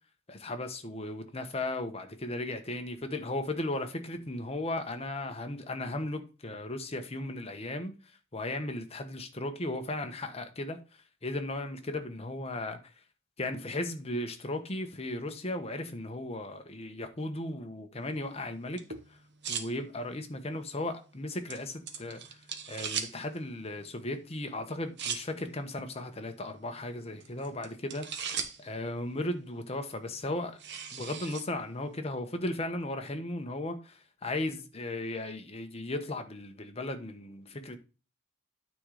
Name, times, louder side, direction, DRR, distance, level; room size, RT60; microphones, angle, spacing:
voice 1, 0.3-7.9 8.3-12.9 13.4-18.8 19.1-19.2 19.5-22.4 22.7-28.1 28.6-30.6 30.9-37.8, left 1 dB, 30° left, 1.0 m, -36 dB
sound 1, 18.0-32.0, right 6 dB, 55° right, 1.1 m, -43 dB
9.6 x 3.8 x 4.8 m
head